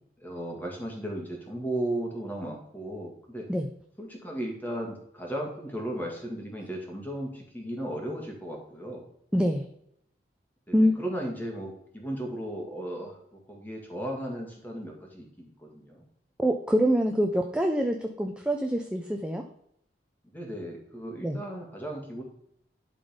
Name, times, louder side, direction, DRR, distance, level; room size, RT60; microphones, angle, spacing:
voice 1, 0.2-3.5 4.0-9.0 10.7-13.2 13.5-16.0 20.3-22.2, right 1 dB, 10° left, 0 dB, 1.9 m, -35 dB
voice 2, 9.3-9.7 10.7-10.9 16.4-19.4 21.2-21.4, equal, 5° right, 3 dB, 0.5 m, -25 dB
11.5 x 4.0 x 5.1 m, 0.74 s
head